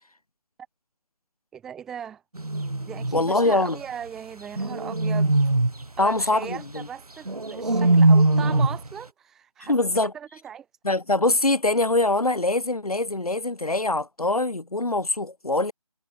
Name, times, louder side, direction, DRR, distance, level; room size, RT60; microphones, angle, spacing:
voice 1, 1.5-2.2 2.9-5.4 6.0-9.7 10.1-10.7, right 8 dB, ahead, 2.2 m, -38 dB
sound 1, 2.3-3.3 4.6-5.8 7.3-8.9, right 2 dB, 80° right, 3.8 m, -21 dB
voice 2, 3.1-3.8 6.0-6.9 9.6-10.1 10.8-15.7, left 2 dB, 80° left, 4.9 m, -23 dB
figure-of-eight pair, 175°, 19 cm